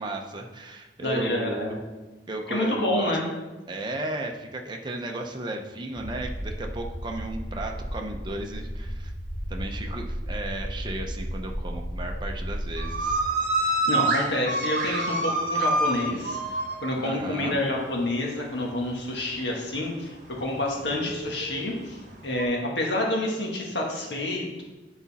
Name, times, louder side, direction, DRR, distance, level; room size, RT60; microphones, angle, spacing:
voice 1, 0.0-1.8 2.3-3.2 3.7-9.1 9.5-13.2 13.6-13.9 15.5-15.6 17.0-17.6 20.8-21.1, right 2 dB, 25° right, 2 dB, 0.7 m, -35 dB
voice 2, 1.0-1.8 2.5-3.3 13.8-16.4 16.8-24.6, left 1 dB, 75° left, -1 dB, 1.5 m, -28 dB
sound 1, 5.9-13.2, equal, 5° left, 1.5 m, -34 dB
sound 2, 12.8-17.6 17.9-18.3 18.6-19.5 20.1-22.4, right 2 dB, 50° right, 1.3 m, -27 dB
9.8 x 4.1 x 4.1 m, 1.2 s
head